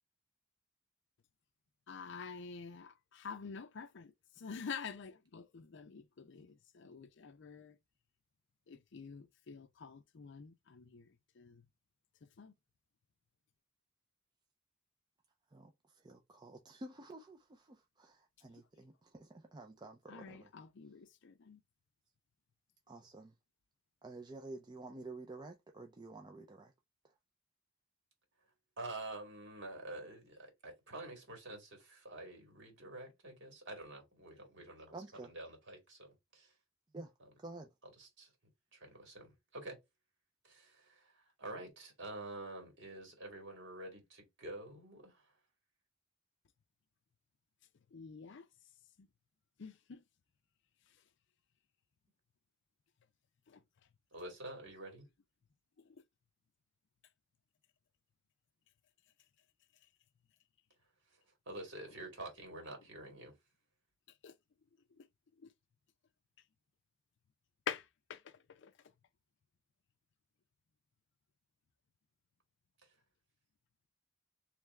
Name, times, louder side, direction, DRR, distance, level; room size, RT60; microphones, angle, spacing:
voice 1, 1.9-4.1 4.4-7.7 8.7-11.1 11.4-11.6 12.4-12.5 20.1-21.6 47.9-48.4 49.6-50.0 64.2-64.3 67.7-67.8 68.1-68.2 68.6-68.7, left 6 dB, 60° left, 0.5 m, -47 dB
voice 2, 15.5-20.5 22.9-23.4 24.0-26.7 27.0-27.1 34.9-35.3 36.9-37.1 37.4-37.7, right 2 dB, 20° right, 0.5 m, -50 dB
voice 3, 28.8-36.5 38.0-38.3 38.7-39.8 40.4-45.3 54.1-55.1 61.5-63.4 72.8-72.9, right 2 dB, 60° right, 2.1 m, -48 dB
3.4 x 3.2 x 3.4 m
head